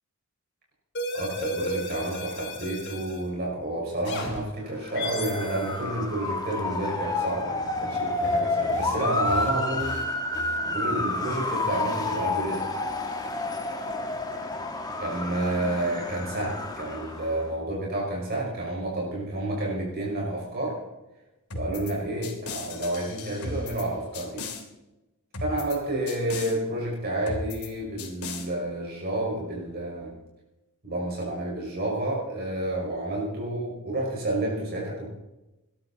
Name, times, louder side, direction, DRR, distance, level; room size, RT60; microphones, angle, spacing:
sound 1, 0.9-3.2 4.0-4.4 4.9-5.8 6.5-6.9 8.2-8.4 8.7-8.9 9.3-9.5 9.8-10.0 10.3-10.6 10.9-11.1, left 1 dB, 50° left, 4.4 m, -35 dB
voice 1, 1.1-10.0 10.6-12.7 15.0-20.8 21.5-24.4 25.4-30.1 30.8-35.1, right 1 dB, 45° right, -3 dB, 5.6 m, -30 dB
Motor vehicle (road) / Siren, 4.8-17.5, left 2 dB, 20° left, 1.8 m, -30 dB
sound 2, 21.5-21.9 22.2-23.9 24.1-24.6 25.3-25.8 26.1-26.5 27.3-27.7 28.0-28.5, left 3 dB, 80° left, 3.0 m, -36 dB
21.0 x 13.0 x 4.2 m, 0.97 s
head